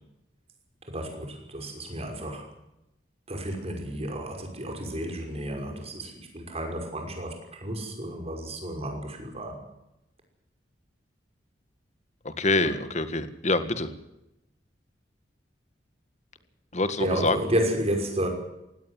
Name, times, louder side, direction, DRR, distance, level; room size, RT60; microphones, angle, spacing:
voice 1, 0.8-2.5 3.3-9.6 17.0-18.3, right 1 dB, 35° right, 3 dB, 5.7 m, -31 dB
voice 2, 12.2-13.9 16.7-17.4, left 2 dB, 40° left, 11 dB, 1.9 m, -26 dB
18.5 x 17.0 x 9.6 m, 0.87 s
head